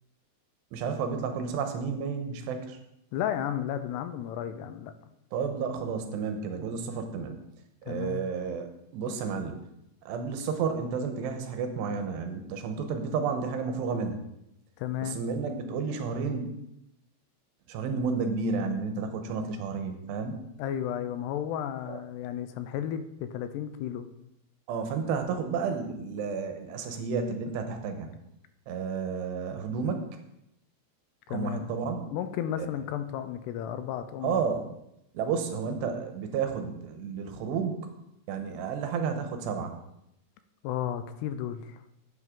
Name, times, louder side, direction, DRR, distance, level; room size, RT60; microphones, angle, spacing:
voice 1, 0.7-2.8 5.3-7.4 7.9-9.6 10.1-14.2 15.0-16.6 17.7-20.3 21.9-22.0 24.7-28.1 28.7-30.1 31.3-32.0 32.6-32.7 34.2-34.6 35.1-37.9 38.3-39.8, right 5 dB, 85° right, 6 dB, 3.2 m, -31 dB
voice 2, 3.1-4.9 7.9-8.3 14.8-15.2 20.6-24.1 31.3-31.7 32.1-34.4 40.6-41.8, left 10 dB, 80° left, 10 dB, 2.7 m, -33 dB
9.9 x 9.2 x 3.8 m, 0.83 s
omnidirectional pair, 4.8 m